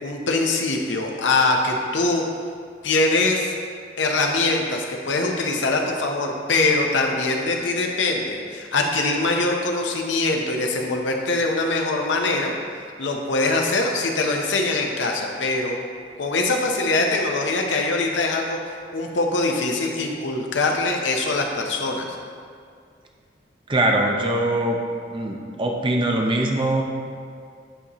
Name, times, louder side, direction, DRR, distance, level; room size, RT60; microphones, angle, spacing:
voice 1, 0.0-2.2 2.8-3.5 4.0-12.5 13.0-15.8 16.2-18.6 18.9-22.0, left 2 dB, 85° left, 1 dB, 0.8 m, -23 dB
voice 2, 23.7-24.8 25.1-26.8, right 1 dB, 30° right, 1 dB, 0.6 m, -22 dB
10.0 x 4.1 x 3.0 m, 2.2 s
head